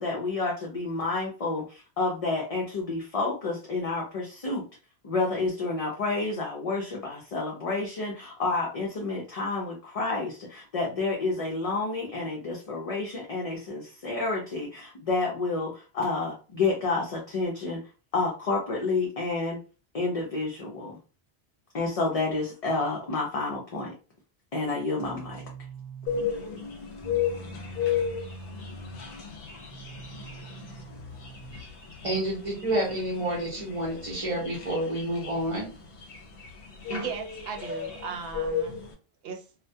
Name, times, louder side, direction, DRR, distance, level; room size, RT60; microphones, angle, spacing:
voice 1, 0.0-4.7 5.0-17.8 18.1-19.6 19.9-21.0 21.7-23.9 24.5-25.5, left 3 dB, 45° left, -1 dB, 0.5 m, -29 dB
sound 1, 25.0-26.3 27.0-29.1 29.7-31.7 32.5-34.4, right 4 dB, 5° left, 0.8 m, -44 dB
sound 2, 26.1-38.9, left 7 dB, 70° left, 0.8 m, -34 dB
voice 2, 32.0-35.7, right 1 dB, 35° right, -4 dB, 0.7 m, -29 dB
voice 3, 36.9-38.8 39.2-39.4, right 5 dB, 70° right, 4 dB, 0.8 m, -36 dB
2.2 x 2.1 x 2.6 m, 0.34 s
omnidirectional pair, 1.1 m